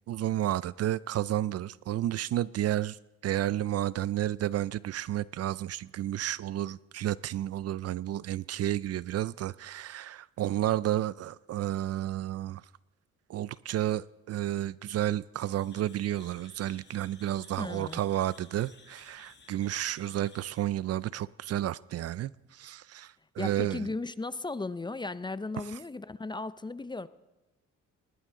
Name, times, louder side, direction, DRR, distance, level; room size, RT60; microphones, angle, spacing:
voice 1, 0.1-3.0 3.2-12.6 13.3-23.9, right 12 dB, 55° right, 0.4 m, -31 dB
sound 1, 15.4-20.7, left 4 dB, 35° left, 2.0 m, -57 dB
voice 2, 17.6-18.0 23.4-27.1, left 3 dB, 15° left, 0.5 m, -36 dB
19.0 x 19.0 x 3.7 m
cardioid pair, 90°, 30 cm